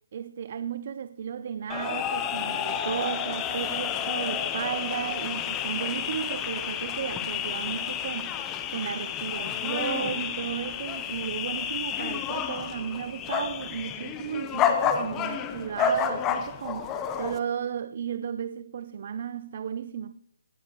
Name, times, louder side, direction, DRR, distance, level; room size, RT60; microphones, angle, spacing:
voice 1, 0.1-20.2, right 8 dB, 35° right, 0.4 m, -34 dB
sound 1, 1.7-17.4, left 8 dB, 10° left, 0.7 m, -30 dB
18.0 x 13.5 x 3.0 m
hypercardioid pair, 170°, 0 cm